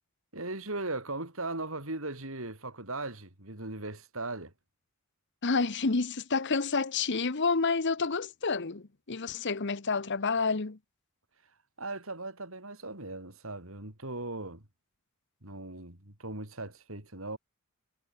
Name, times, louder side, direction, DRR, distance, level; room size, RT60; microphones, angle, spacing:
voice 1, 0.3-4.5 11.8-14.7 15.4-17.4, right 2 dB, 65° right, 5.0 m, -38 dB
voice 2, 5.4-10.8, left 4 dB, 55° left, 1.1 m, -29 dB
head